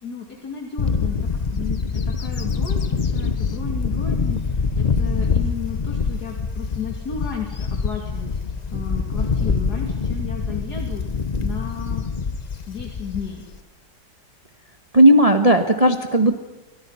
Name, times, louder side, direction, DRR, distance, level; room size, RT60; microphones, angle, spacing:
voice 1, 0.0-8.4 8.7-12.1 12.7-13.5, left 6 dB, 60° left, 1 dB, 3.1 m, -34 dB
Bird / Wind, 0.8-13.6, left 5 dB, 45° left, 0.5 m, -25 dB
voice 2, 14.9-16.4, right 1 dB, 20° right, 6 dB, 1.3 m, -15 dB
29.5 x 24.0 x 5.7 m, 1.1 s
omnidirectional pair, 1.9 m